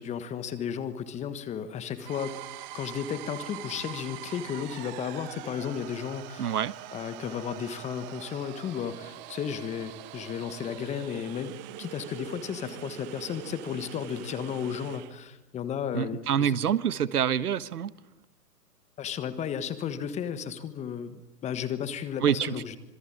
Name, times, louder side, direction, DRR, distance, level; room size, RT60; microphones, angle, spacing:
voice 1, 0.0-2.4 2.7-6.6 6.9-16.5 19.0-22.8, left 8 dB, 15° left, 13 dB, 1.5 m, -34 dB
sound 1, 2.0-15.1, right 15 dB, 30° right, 1.3 m, -43 dB
voice 2, 6.4-6.7 15.9-17.9 22.2-22.6, right 8 dB, 70° right, 18 dB, 1.4 m, -26 dB
26.5 x 22.0 x 8.9 m, 0.90 s
hypercardioid pair, 140°, 47 cm